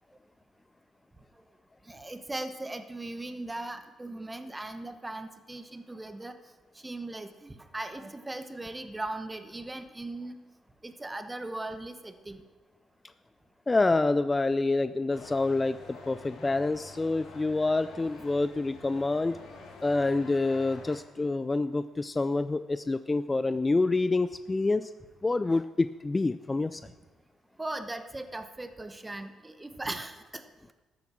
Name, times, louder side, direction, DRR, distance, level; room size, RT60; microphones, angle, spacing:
voice 1, 1.9-6.4 6.8-10.4 10.8-12.4 27.6-30.4, right 2 dB, 15° right, 9 dB, 1.1 m, -38 dB
voice 2, 13.7-19.4 19.8-24.9 25.2-26.8, left 3 dB, 20° left, 13 dB, 0.4 m, -27 dB
sound 1, 15.1-21.0, left 3 dB, 80° left, 2.8 m, -48 dB
13.5 x 7.8 x 6.2 m, 1.2 s
cardioid pair, 90°, 0 cm